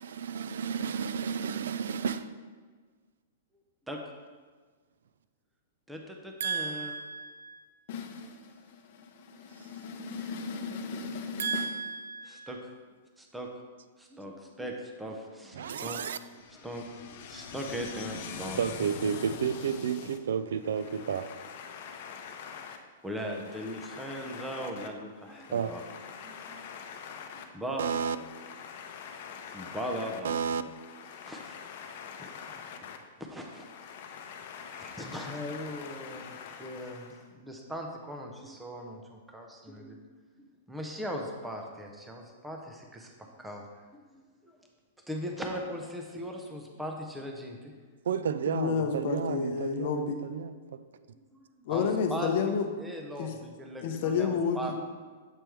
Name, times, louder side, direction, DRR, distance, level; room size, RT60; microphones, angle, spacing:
voice 1, 0.0-2.3 6.4-7.7 11.4-12.6 15.5-16.2 18.6-21.3 25.5-25.7 27.8-28.2 30.2-30.6 48.1-50.8, right 7 dB, 75° right, 13 dB, 0.4 m, -32 dB
voice 2, 5.9-6.9 12.2-12.7 13.2-13.5 14.0-16.0 16.5-16.9 17.3-18.6 23.0-25.8 26.2-26.6 27.3-27.8 29.5-30.4 31.2-31.6 32.2-32.4 33.2-33.7 34.7-37.1 37.3-40.0 40.4-43.7 43.9-44.5 45.1-47.7 51.3-52.3 52.8-54.8, equal, 5° right, 1 dB, 0.5 m, -39 dB
voice 3, 7.9-8.5 8.9-11.7 16.4-20.2 20.9-22.8 23.5-24.9 25.3-27.4 28.2-30.2 30.8-33.0 33.7-37.2 48.5-50.2 51.6-52.7 53.2-53.3 53.8-54.8, left 6 dB, 45° left, 5 dB, 0.7 m, -36 dB
7.5 x 3.4 x 4.6 m, 1.5 s
hypercardioid pair, 165°, 0 cm